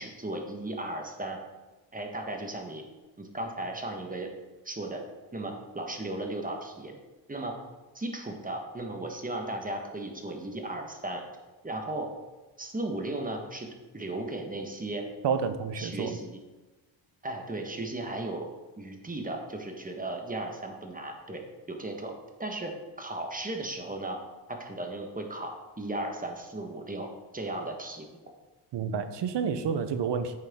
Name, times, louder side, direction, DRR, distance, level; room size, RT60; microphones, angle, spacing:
voice 1, 0.0-1.4 1.9-2.8 3.2-4.3 4.6-5.0 5.3-6.9 7.3-7.6 7.9-11.2 11.6-12.1 12.6-13.7 13.9-15.0 15.7-16.4 17.2-18.5 18.8-21.4 21.7-22.1 22.4-24.2 24.5-27.1 27.3-28.2, right 2 dB, 15° right, 3 dB, 1.3 m, -36 dB
voice 2, 15.2-16.2 28.7-30.4, right 6 dB, 60° right, 10 dB, 0.8 m, -29 dB
8.6 x 6.5 x 3.7 m, 1.2 s
cardioid pair, 95°, 47 cm